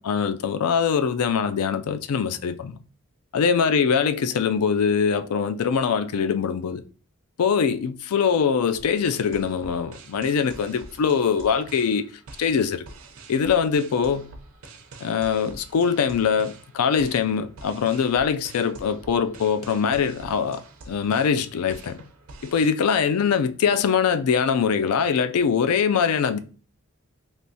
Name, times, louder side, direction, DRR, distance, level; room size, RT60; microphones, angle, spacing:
voice 1, 0.0-2.8 3.3-6.8 7.4-12.1 12.4-12.8 13.3-14.3 15.0-20.6 20.9-22.0 22.4-26.4, left 6 dB, 80° left, 0.4 m, -23 dB
sound 1, 8.7-22.7, right 3 dB, 65° right, 0.6 m, -46 dB
3.4 x 2.5 x 2.7 m
head